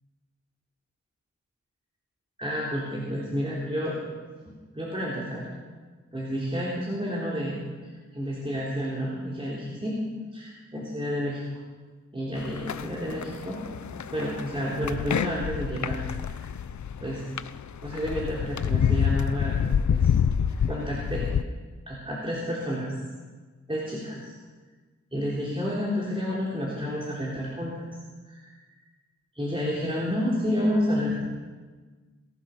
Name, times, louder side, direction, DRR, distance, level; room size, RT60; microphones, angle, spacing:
voice 1, 2.4-3.9 4.4-5.5 6.1-7.6 8.1-9.9 10.3-11.4 12.1-13.6 13.9-16.0 16.2-16.5 17.0-17.2 17.8-20.1 20.6-21.3 21.9-22.9 23.7-24.3 25.1-27.9 28.3-28.5 29.3-31.1, equal, 20° right, -6 dB, 3.4 m, -30 dB
sound 1, 12.4-21.4, left 7 dB, 70° left, 0.6 m, -28 dB
20.5 x 11.5 x 5.8 m, 1.4 s
wide cardioid pair, 70°, 30 cm